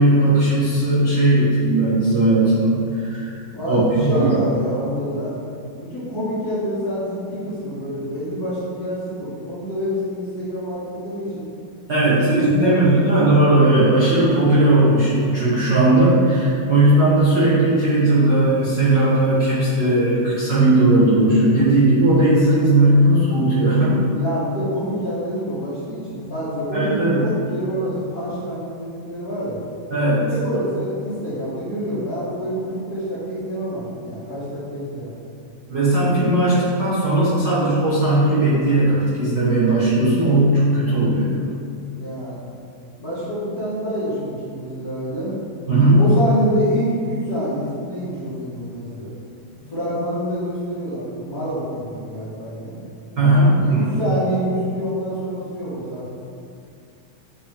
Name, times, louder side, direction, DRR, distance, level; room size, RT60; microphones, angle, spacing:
voice 1, 0.0-3.4 3.7-4.3 11.9-24.1 26.7-27.3 29.9-30.3 35.7-41.3 45.7-46.1 53.2-54.0, right 1 dB, 70° right, -10 dB, 1.0 m, -17 dB
voice 2, 3.5-5.3 5.8-11.4 12.0-13.2 24.1-29.6 30.2-35.1 42.0-42.4 43.0-45.3 45.9-49.1 49.7-52.8 53.6-56.1, equal, 35° left, -12 dB, 1.5 m, -27 dB
9.7 x 5.3 x 3.6 m, 2.5 s
omnidirectional pair, 4.4 m